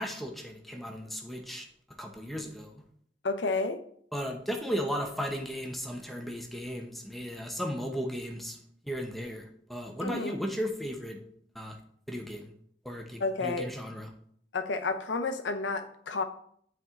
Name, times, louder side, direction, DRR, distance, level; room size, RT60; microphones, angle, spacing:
voice 1, 0.0-1.7 2.0-2.7 4.1-8.6 8.9-11.2 11.5-11.8 12.1-12.5 12.8-14.1, equal, ahead, 1 dB, 0.9 m, -35 dB
voice 2, 3.2-3.8 10.0-10.4 13.2-13.7 14.5-16.2, left 3 dB, 90° left, 8 dB, 0.7 m, -31 dB
8.4 x 4.5 x 3.6 m, 0.64 s
head